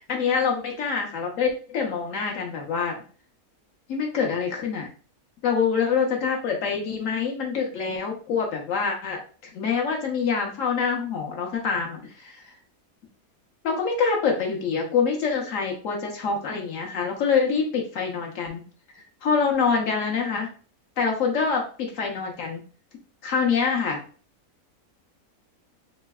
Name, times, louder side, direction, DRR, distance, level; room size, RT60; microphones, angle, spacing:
voice 1, 0.1-3.0 3.9-4.9 5.4-9.2 9.5-12.4 13.6-18.6 19.2-20.5 21.0-22.6 23.2-24.0, left 5 dB, 65° left, 1 dB, 1.2 m, -25 dB
3.8 x 3.2 x 2.3 m, 0.40 s
omnidirectional pair, 1.6 m